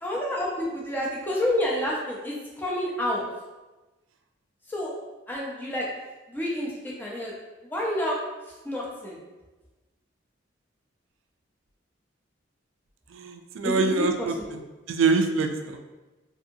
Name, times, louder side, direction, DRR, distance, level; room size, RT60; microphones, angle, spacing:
voice 1, 0.0-3.2 4.7-4.9 5.3-5.9 6.3-7.3 7.6-8.2 8.5-9.2 13.6-14.3, left 1 dB, 10° left, -4 dB, 0.5 m, -29 dB
voice 2, 13.1-14.3 14.9-15.8, right 4 dB, 75° right, 5 dB, 0.3 m, -24 dB
2.7 x 2.6 x 2.5 m, 1.1 s
head